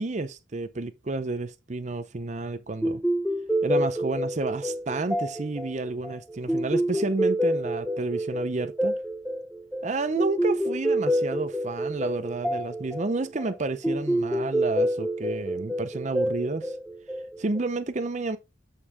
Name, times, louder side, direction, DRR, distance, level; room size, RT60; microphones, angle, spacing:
voice 1, 0.0-3.0 3.6-9.0 9.8-16.7 17.4-18.4, right 3 dB, 35° right, 0.6 m, -30 dB
sound 1, 2.8-17.6, equal, ahead, 0.7 m, -28 dB
8.1 x 6.1 x 3.6 m
head